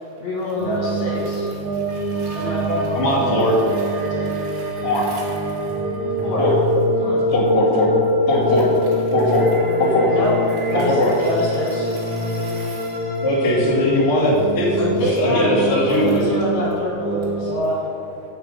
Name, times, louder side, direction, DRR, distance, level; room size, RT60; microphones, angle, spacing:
voice 1, 0.2-1.5 2.3-3.3 6.2-6.4 7.0-7.2 10.1-10.3 10.7-11.0 11.2-11.9 14.8-17.8, equal, 55° left, -7 dB, 3.6 m, -25 dB
sound 1, 0.6-17.5, equal, 25° right, 1.1 m, -24 dB
voice 2, 1.6-2.5 4.0-5.8 11.8-13.2, right 3 dB, 85° right, -4 dB, 3.9 m, -43 dB
voice 3, 2.9-3.6 4.8-5.1 6.4-6.5 7.3-7.9 8.3-8.7 9.1-9.5 9.8-10.1 10.7-11.1 13.2-16.2, left 1 dB, 35° left, -9 dB, 2.6 m, -19 dB
8.5 x 7.9 x 6.3 m, 2.9 s
omnidirectional pair, 5.5 m